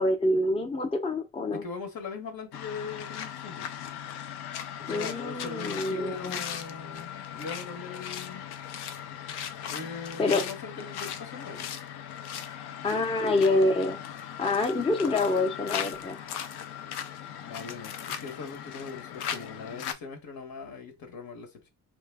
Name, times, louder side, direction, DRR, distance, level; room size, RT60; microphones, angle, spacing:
voice 1, 0.0-1.6 4.9-6.4 10.2-10.4 12.8-14.0 14.4-16.2, left 2 dB, 15° left, 0.5 m, -26 dB
voice 2, 1.5-3.7 4.8-8.5 9.7-11.7 17.4-21.7, left 4 dB, 65° left, 1.0 m, -40 dB
sound 1, 2.5-19.9, left 9 dB, 85° left, 0.5 m, -38 dB
3.2 x 2.1 x 3.3 m
cardioid pair, 95°, 38 cm